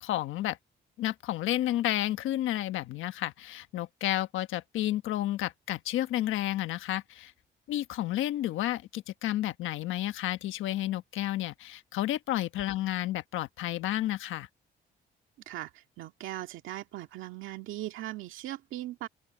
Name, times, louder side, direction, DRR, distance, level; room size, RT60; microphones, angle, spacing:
voice 1, 0.0-0.6 1.0-7.3 7.7-14.5, left 14 dB, 85° left, 1.3 m, -31 dB
voice 2, 15.5-19.1, right 14 dB, 90° right, 2.0 m, -39 dB
open air
cardioid pair, 90°, 20 cm